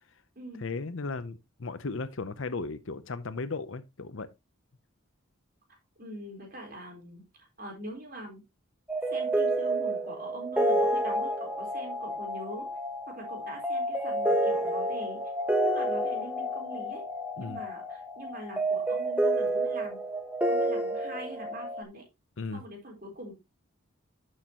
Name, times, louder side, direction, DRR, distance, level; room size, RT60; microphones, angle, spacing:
voice 1, 0.6-4.3 17.4-17.6 22.4-22.6, left 3 dB, 70° left, 0.7 m, -36 dB
voice 2, 6.0-8.4 9.1-12.7 13.1-15.2 15.6-17.0 17.4-20.0 20.5-22.0 22.5-23.3, right 1 dB, 45° right, 4.0 m, -43 dB
sound 1, 8.9-21.8, right 1 dB, 5° right, 1.0 m, -29 dB
12.0 x 6.5 x 3.0 m
head